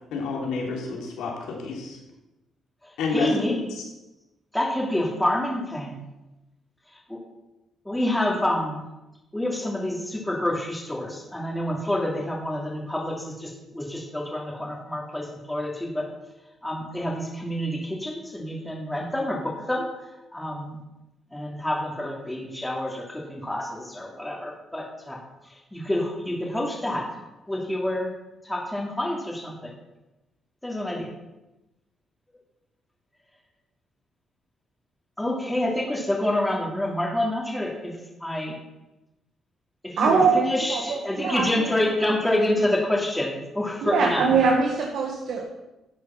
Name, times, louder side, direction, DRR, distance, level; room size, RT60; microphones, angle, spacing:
voice 1, 0.1-2.0 3.0-3.3 3.7-3.8, left 4 dB, 85° left, -1 dB, 3.2 m, -29 dB
voice 2, 2.8-3.6 4.5-6.0 6.9-7.2 7.8-8.8 9.3-16.1 16.6-19.9 20.3-20.8 21.3-27.1 27.5-28.1 28.4-29.7 30.6-31.1 35.2-38.6 39.8-44.4, left 1 dB, 5° left, -2 dB, 2.7 m, -28 dB
voice 3, 40.0-40.4 40.7-41.7 43.8-45.5, right 5 dB, 75° right, 0 dB, 1.8 m, -22 dB
11.5 x 7.8 x 5.9 m, 0.99 s
cardioid pair, 90°, 0 cm